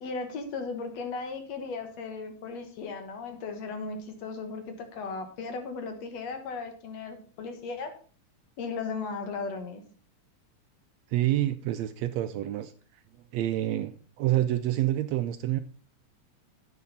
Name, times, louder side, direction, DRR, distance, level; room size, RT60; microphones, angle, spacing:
voice 1, 0.0-7.9 8.6-9.8, left 4 dB, 65° left, 6 dB, 2.4 m, -36 dB
voice 2, 11.1-12.7 13.3-15.6, right 14 dB, 80° right, 11 dB, 1.7 m, -27 dB
9.5 x 8.0 x 4.1 m, 0.40 s
omnidirectional pair, 3.4 m